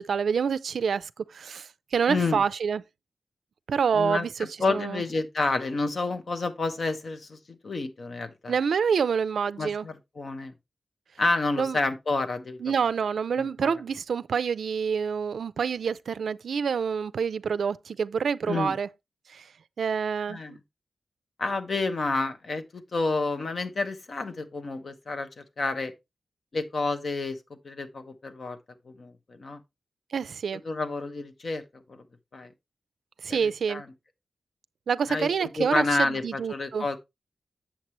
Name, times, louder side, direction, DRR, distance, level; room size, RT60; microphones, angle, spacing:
voice 1, 0.0-2.8 3.7-4.3 4.7-5.0 8.5-9.9 11.6-11.8 12.6-18.9 19.3-19.5 19.8-20.6 30.1-30.6 33.2-33.8 34.9-36.9, right 6 dB, 85° right, 0.4 m, -27 dB
voice 2, 2.1-2.4 3.9-4.3 4.6-7.4 7.6-8.5 9.6-10.5 11.2-12.6 13.4-13.7 18.5-18.7 20.3-20.5 21.4-25.9 26.5-27.4 27.6-28.6 28.9-29.6 30.6-31.6 31.9-32.0 32.3-32.5 33.3-33.9 35.1-37.0, left 3 dB, 45° left, 0.9 m, -29 dB
7.3 x 7.3 x 3.1 m
wide cardioid pair, 170°, 0 cm